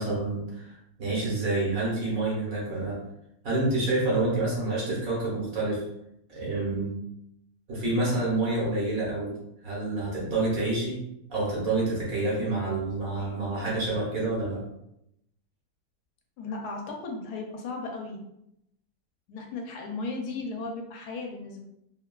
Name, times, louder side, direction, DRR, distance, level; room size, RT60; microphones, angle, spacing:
voice 1, 0.0-3.0 3.4-5.9 6.3-7.0 7.7-9.4 9.6-11.0 11.3-14.6, right 2 dB, 65° right, -6 dB, 1.4 m, -28 dB
voice 2, 16.4-18.2 19.3-21.6, left 3 dB, 80° left, 2 dB, 1.1 m, -35 dB
3.1 x 2.3 x 2.2 m, 0.81 s
omnidirectional pair, 1.7 m